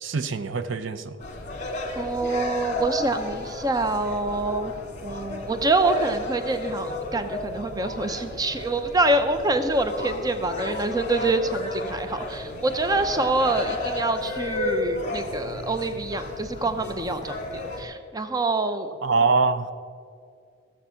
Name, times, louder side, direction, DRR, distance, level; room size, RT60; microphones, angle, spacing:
voice 1, 0.0-1.2 19.0-19.7, right 4 dB, 65° right, 12 dB, 0.6 m, -23 dB
sound 1, 1.2-17.8, left 2 dB, 35° left, 1.6 m, -33 dB
voice 2, 2.0-4.7 5.0-18.9, right 2 dB, 20° right, 9 dB, 0.6 m, -26 dB
15.0 x 7.3 x 5.7 m, 2.3 s
head